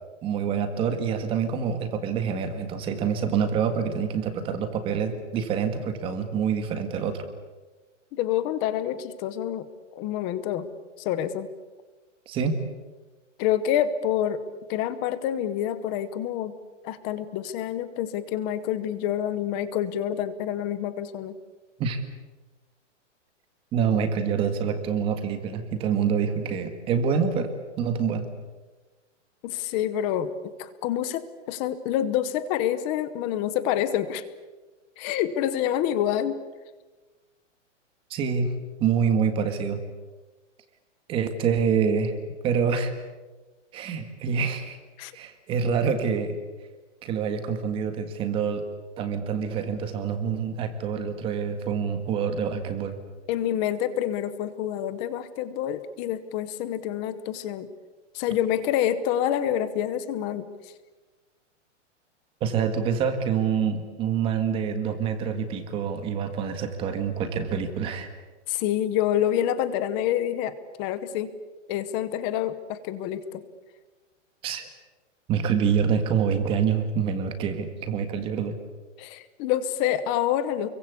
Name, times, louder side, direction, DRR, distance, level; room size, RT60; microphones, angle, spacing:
voice 1, 0.2-7.3 12.3-12.5 21.8-22.0 23.7-27.5 27.8-28.3 38.1-38.5 38.8-39.8 41.1-42.1 42.4-42.9 43.7-44.8 45.1-46.4 47.0-48.6 49.0-53.0 62.4-68.1 74.4-74.7 75.3-78.5, right 6 dB, 15° right, 8 dB, 1.8 m, -26 dB
voice 2, 8.1-9.7 9.9-10.7 11.0-11.5 13.4-14.4 14.7-16.6 16.8-21.3 29.4-34.2 35.0-36.4 45.0-45.1 53.3-57.7 58.1-60.7 68.5-71.3 71.7-73.4 79.0-80.7, left 10 dB, 15° left, 14 dB, 0.8 m, -27 dB
29.0 x 23.0 x 8.4 m, 1.2 s
hypercardioid pair, 180°, 37 cm